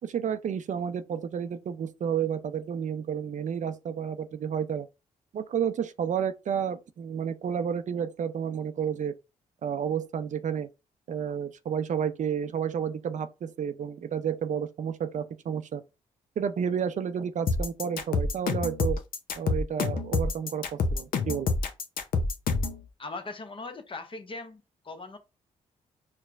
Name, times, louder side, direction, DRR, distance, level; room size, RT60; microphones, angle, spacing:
voice 1, 0.0-4.9 5.3-9.1 9.6-10.7 11.1-15.8 16.4-19.0 19.4-21.5, right 8 dB, 50° right, 0.4 m, -31 dB
sound 1, 17.5-22.8, left 4 dB, 65° left, 0.6 m, -27 dB
voice 2, 23.0-25.2, left 3 dB, 35° left, 0.8 m, -40 dB
4.4 x 2.1 x 2.4 m
supercardioid pair, 50°, 16 cm